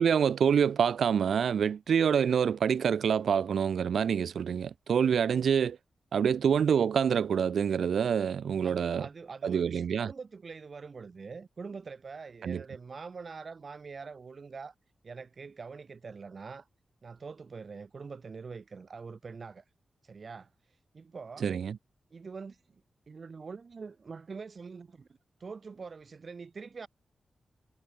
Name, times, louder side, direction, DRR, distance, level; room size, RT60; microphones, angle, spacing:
voice 1, 0.0-5.8 6.1-9.1 9.4-10.1 12.4-12.6 21.4-21.8, right 7 dB, 90° right, 0.4 m, -26 dB
voice 2, 8.6-14.7 15.0-16.7 17.0-19.6 20.0-20.5 20.9-21.4 22.1-22.8 23.1-25.1 25.4-26.9, right 5 dB, 45° right, 1.6 m, -44 dB
wide cardioid pair, 135°, 0 cm